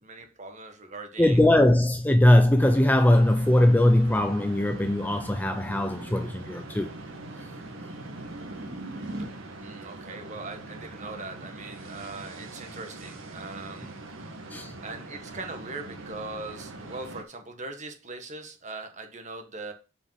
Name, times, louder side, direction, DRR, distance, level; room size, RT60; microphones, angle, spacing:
voice 1, 0.0-1.4 9.6-14.0 14.8-19.7, right 3 dB, 35° right, 1.5 m, -40 dB
voice 2, 1.2-6.9 14.5-14.7, left 1 dB, 10° left, 0.5 m, -20 dB
sound 1, 2.6-17.2, right 2 dB, 85° right, 1.7 m, -43 dB
sound 2, 3.4-9.4, right 1 dB, 55° right, 2.3 m, -43 dB
7.7 x 5.2 x 5.9 m
head